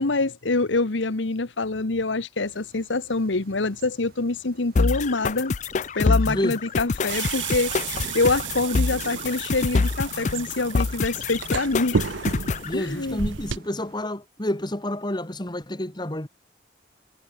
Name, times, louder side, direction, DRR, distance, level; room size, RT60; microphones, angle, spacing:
voice 1, 0.0-5.6 5.9-12.0 12.7-13.2, left 3 dB, 75° left, 1.2 m, -25 dB
sound 1, 2.4-14.0, right 6 dB, 50° right, 7.5 m, -51 dB
sound 2, 4.8-12.7, left 4 dB, 40° left, 0.5 m, -26 dB
voice 2, 6.3-6.6 12.6-16.3, left 1 dB, 25° left, 2.2 m, -29 dB
sound 3, 7.1-13.6, right 5 dB, 75° right, 0.7 m, -32 dB
head